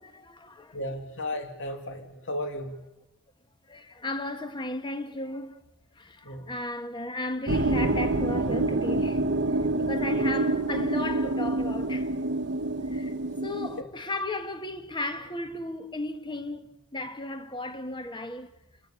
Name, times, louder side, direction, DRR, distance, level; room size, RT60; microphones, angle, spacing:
voice 1, 0.0-0.8 3.7-5.6 6.0-9.2 9.8-12.4 12.9-13.1 13.4-18.5, left 2 dB, 20° left, 1.4 m, -35 dB
voice 2, 0.7-2.8 6.2-6.5 13.8-14.0, left 1 dB, 60° left, 2.5 m, -35 dB
sound 1, 7.5-13.8, right 2 dB, 55° right, 1.0 m, -27 dB
29.5 x 13.5 x 8.3 m
head